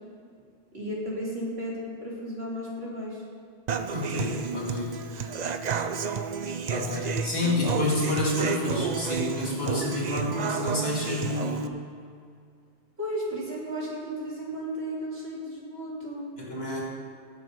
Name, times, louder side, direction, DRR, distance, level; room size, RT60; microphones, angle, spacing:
voice 1, 0.7-3.2 13.0-16.3, equal, 70° right, -5 dB, 3.3 m, -34 dB
Human voice / Acoustic guitar, 3.7-11.7, right 6 dB, 50° right, 0.6 m, -31 dB
voice 2, 3.9-5.0 6.5-11.7 16.4-16.8, left 2 dB, 65° left, -4 dB, 3.0 m, -29 dB
19.0 x 6.8 x 5.4 m, 2.4 s
omnidirectional pair, 1.1 m